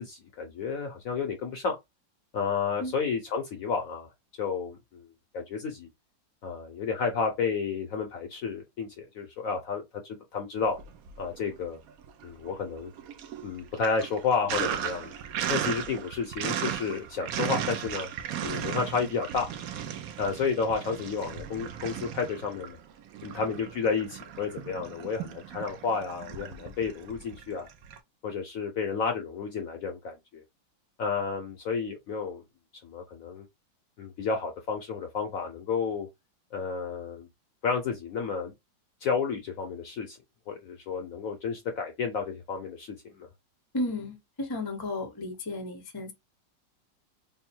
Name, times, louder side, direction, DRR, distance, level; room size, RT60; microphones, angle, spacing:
voice 1, 0.0-1.8 2.3-4.1 4.4-5.1 5.3-5.9 6.4-10.8 11.2-11.8 12.2-12.9 13.4-15.1 15.5-18.1 18.4-19.5 20.2-22.8 23.2-27.7 28.2-30.4 31.0-32.4 32.8-33.4 34.0-36.1 36.5-37.3 37.6-38.5 39.0-40.2 40.5-43.3, left 5 dB, 65° left, 0.8 m, -31 dB
Sink (filling or washing), 10.7-11.5 11.9-28.0, right 9 dB, 75° right, 0.8 m, -36 dB
voice 2, 43.7-46.1, left 2 dB, 35° left, 0.4 m, -33 dB
3.5 x 2.0 x 4.3 m
omnidirectional pair, 2.0 m